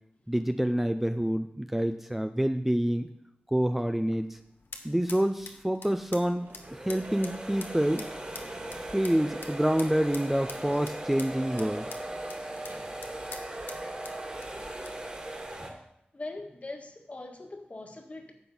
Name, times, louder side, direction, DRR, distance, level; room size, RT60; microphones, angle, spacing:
voice 1, 0.3-3.1 3.5-4.4 4.8-8.1 8.7-11.9 15.6-15.7, right 1 dB, 5° right, 7 dB, 0.5 m, -27 dB
sound 1, 3.9-15.6, left 3 dB, 80° left, 1.1 m, -48 dB
Sliding door / Slam, 6.4-13.1, right 2 dB, 75° right, 1.9 m, -54 dB
sound 2, 6.5-15.7, right 1 dB, 25° right, 2.0 m, -39 dB
voice 2, 16.1-18.3, left 2 dB, 40° left, 3 dB, 1.7 m, -41 dB
10.5 x 7.1 x 5.5 m, 0.79 s
wide cardioid pair, 70°, 4 cm